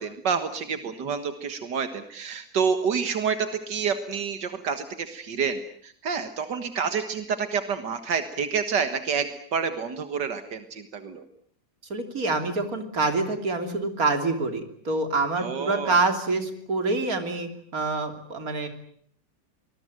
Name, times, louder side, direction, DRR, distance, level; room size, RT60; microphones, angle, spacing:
voice 1, 0.0-11.3 15.4-16.0, right 6 dB, 85° right, 9 dB, 2.2 m, -28 dB
voice 2, 11.9-18.7, right 3 dB, 55° right, 7 dB, 3.5 m, -26 dB
25.0 x 20.5 x 9.1 m, 0.62 s
omnidirectional pair, 1.8 m